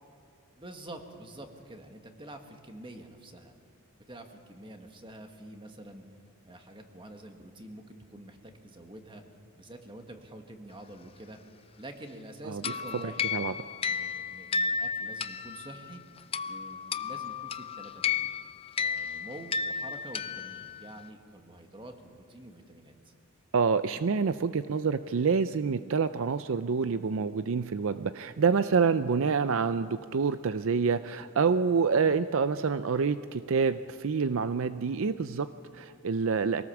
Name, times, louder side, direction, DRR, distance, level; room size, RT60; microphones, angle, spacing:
voice 1, 0.6-3.5 4.1-6.0 6.4-9.2 9.5-11.4 11.8-13.3 13.8-16.0 16.5-18.3 18.8-23.1, right 1 dB, 25° right, 5 dB, 1.6 m, -47 dB
sound 1, 12.6-21.0, left 6 dB, 25° left, 0.5 m, -33 dB
voice 2, 23.5-36.6, right 5 dB, 65° right, 12 dB, 0.5 m, -27 dB
24.0 x 18.0 x 7.1 m, 2.4 s
head